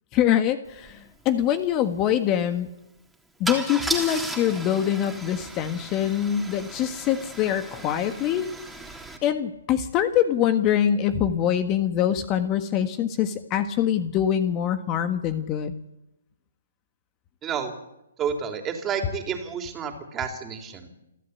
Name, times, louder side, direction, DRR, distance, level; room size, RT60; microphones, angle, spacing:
voice 1, 0.1-2.7 3.4-8.5 9.2-15.7, left 10 dB, 30° left, 9 dB, 1.5 m, -24 dB
Car / Engine starting / Idling, 0.8-0.9 1.2-1.5 3.5-9.2, right 2 dB, ahead, 3.3 m, -35 dB
voice 2, 17.4-17.7 18.2-20.9, right 7 dB, 20° right, 4 dB, 3.6 m, -30 dB
28.5 x 12.5 x 8.4 m, 0.90 s
hypercardioid pair, 135°, 0 cm